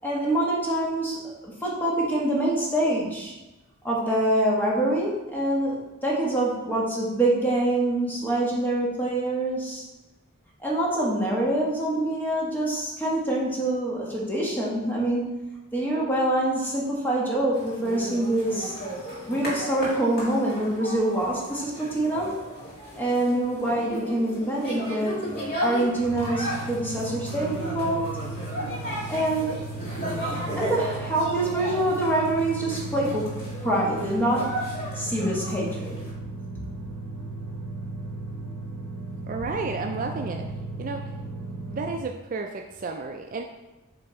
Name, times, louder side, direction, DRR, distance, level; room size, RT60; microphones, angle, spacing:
voice 1, 0.0-3.3 3.8-9.8 10.6-18.7 19.3-22.4 23.0-28.2 29.0-29.7 30.6-33.3 33.6-34.6 34.9-36.0, right 1 dB, 10° left, -4 dB, 1.2 m, -25 dB
sound 1, 17.5-36.1, equal, 45° left, 1.8 m, -35 dB
sound 2, 26.0-42.1, right 2 dB, 85° right, 0.8 m, -36 dB
voice 2, 39.3-40.4 40.8-41.0 41.7-43.4, right 3 dB, 40° right, 4 dB, 0.3 m, -32 dB
7.0 x 3.3 x 4.2 m, 1.1 s
head